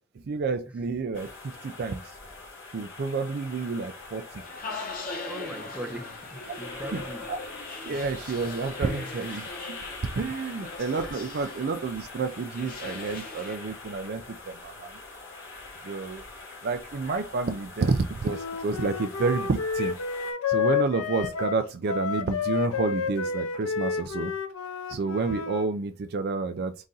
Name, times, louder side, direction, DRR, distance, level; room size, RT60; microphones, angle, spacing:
voice 1, 0.2-2.2 2.7-4.4 6.5-6.6 6.9-7.0 7.3-7.4 7.8-9.8 10.2-15.0 15.8-16.2 16.6-20.0 20.5-24.3 24.9-26.8, right 4 dB, 45° right, 0.3 m, -29 dB
sound 1, 1.1-20.3, left 3 dB, 55° left, 1.5 m, -44 dB
sound 2, 4.4-13.6, left 3 dB, 40° left, 1.1 m, -40 dB
voice 2, 5.2-7.2 8.9-9.1 10.4-10.5, right 1 dB, 5° right, 0.7 m, -40 dB
Wind instrument woodwind instrument, 18.3-25.7, left 6 dB, 75° left, 0.5 m, -30 dB
4.0 x 2.5 x 3.8 m
head